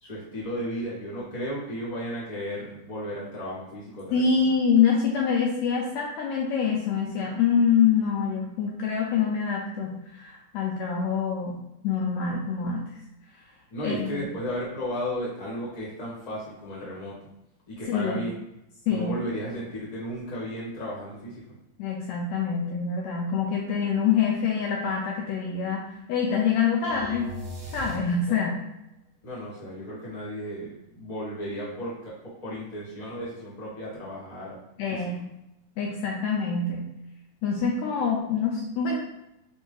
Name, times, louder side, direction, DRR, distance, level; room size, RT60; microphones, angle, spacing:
voice 1, 0.0-4.5 13.7-17.1 17.7-18.4 18.9-21.4 28.3-28.4 29.2-34.6 34.9-35.1, equal, 20° left, -7 dB, 0.9 m, -34 dB
voice 2, 4.1-11.6 11.8-12.8 13.8-14.1 17.9-18.2 18.9-19.1 21.8-25.8 26.1-27.3 27.7-28.6 34.8-35.2 35.8-36.8 37.4-39.0, left 6 dB, 80° left, -1 dB, 1.7 m, -25 dB
sound 1, 26.8-28.6, right 1 dB, 70° right, 0.8 m, -39 dB
4.9 x 2.6 x 3.8 m, 0.86 s
omnidirectional pair, 3.6 m